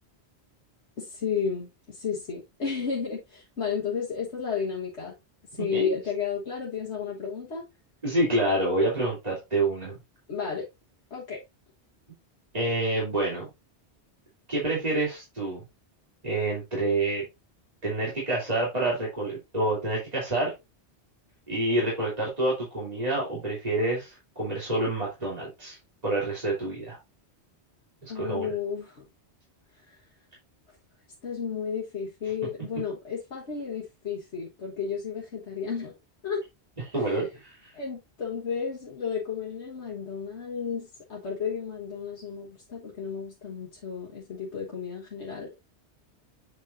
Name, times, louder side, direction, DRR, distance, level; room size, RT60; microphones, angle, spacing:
voice 1, 1.0-5.1 5.5-7.7 10.3-10.7 11.1-11.4 28.1-29.0 29.9-30.0 31.2-36.0 36.2-36.4 37.0-37.2 37.7-45.6, left 6 dB, 85° left, 1.8 m, -33 dB
voice 2, 5.6-5.9 8.0-10.0 12.5-13.5 14.5-15.6 16.2-17.2 17.8-20.5 21.5-25.8 26.0-27.0 28.0-28.5 36.9-37.7, right 2 dB, 35° right, 3.2 m, -27 dB
8.2 x 5.3 x 2.6 m
omnidirectional pair, 1.1 m